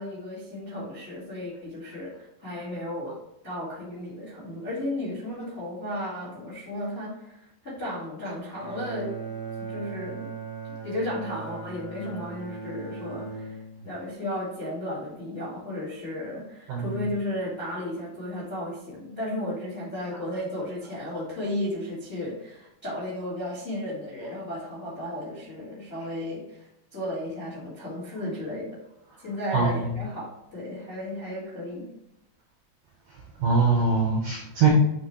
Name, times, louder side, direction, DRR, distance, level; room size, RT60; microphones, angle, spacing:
voice 1, 0.0-3.2 3.4-9.1 9.6-10.3 10.7-28.8 29.2-31.9, left 1 dB, 85° left, -7 dB, 0.5 m, -34 dB
Bowed string instrument, 8.5-14.0, right 4 dB, 35° left, 1.1 m, -38 dB
voice 2, 16.7-17.1 29.5-29.9 33.4-34.7, right 4 dB, 85° right, -2 dB, 1.9 m, -23 dB
9.4 x 3.3 x 3.2 m, 0.86 s
omnidirectional pair, 5.4 m